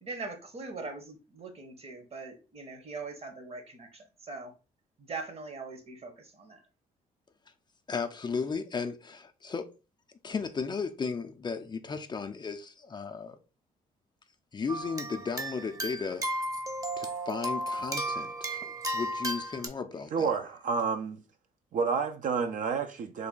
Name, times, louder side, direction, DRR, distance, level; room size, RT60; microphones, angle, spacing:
voice 1, 0.0-4.5 5.0-6.6, right 3 dB, 40° right, 0.9 m, -41 dB
voice 2, 7.9-9.7 10.2-13.4 14.5-16.3 17.0-20.3, left 5 dB, 30° left, 0.4 m, -35 dB
sound 1, 14.7-19.7, right 1 dB, 20° right, 0.7 m, -34 dB
voice 3, 20.1-21.2 21.7-23.3, right 5 dB, 55° right, 0.5 m, -29 dB
3.3 x 2.2 x 3.7 m
cardioid pair, 80°, 16 cm